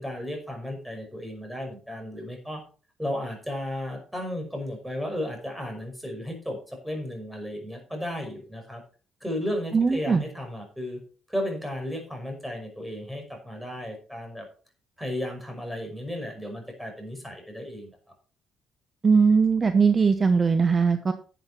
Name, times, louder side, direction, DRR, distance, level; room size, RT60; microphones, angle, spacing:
voice 1, 0.0-2.6 3.0-8.8 9.2-11.0 11.3-14.5 15.0-18.0, left 1 dB, ahead, 3 dB, 5.6 m, -34 dB
voice 2, 9.7-10.2 19.0-21.1, right 5 dB, 35° right, 9 dB, 1.0 m, -20 dB
11.0 x 7.9 x 4.4 m, 0.38 s
cardioid pair, 90°, 0 cm